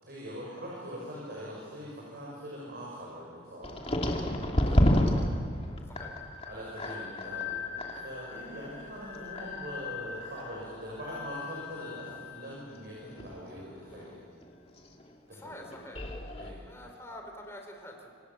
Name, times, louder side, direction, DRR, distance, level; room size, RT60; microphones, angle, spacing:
voice 1, 0.0-3.9 4.6-5.3 6.4-14.2 15.3-15.6 16.3-16.6, equal, 50° right, -5 dB, 6.7 m, -42 dB
sound 1, 3.6-14.5 14.8-15.1 15.5-16.5, left 1 dB, 30° left, 2.5 m, -32 dB
voice 2, 15.3-16.2 16.7-18.1, left 1 dB, 15° left, 2 dB, 4.1 m, -46 dB
27.5 x 27.0 x 7.4 m, 2.2 s
head